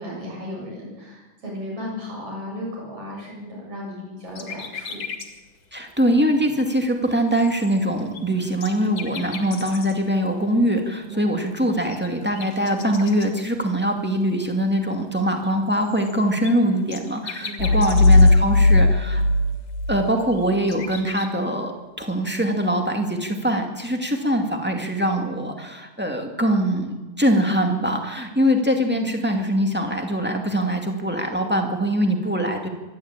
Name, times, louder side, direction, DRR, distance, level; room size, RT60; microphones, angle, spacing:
voice 1, 0.0-5.0 11.1-11.2 17.4-17.8 28.8-29.1, left 1 dB, 45° right, -2 dB, 8.4 m, -35 dB
sound 1, 4.4-5.3 5.7-5.8 6.4-6.5 6.8-6.9 7.1-10.1 11.4-11.5 11.7-13.7 14.1-14.2 15.4-18.3 18.8-18.9 19.2-19.3 19.9-21.3, left 6 dB, 50° left, 2.9 m, -38 dB
voice 2, 5.7-19.2 19.9-32.7, equal, 5° right, 3 dB, 1.3 m, -23 dB
sound 2, 17.6-20.5, left 2 dB, 75° left, 2.4 m, -17 dB
24.5 x 12.0 x 8.9 m, 1.1 s
omnidirectional pair, 3.9 m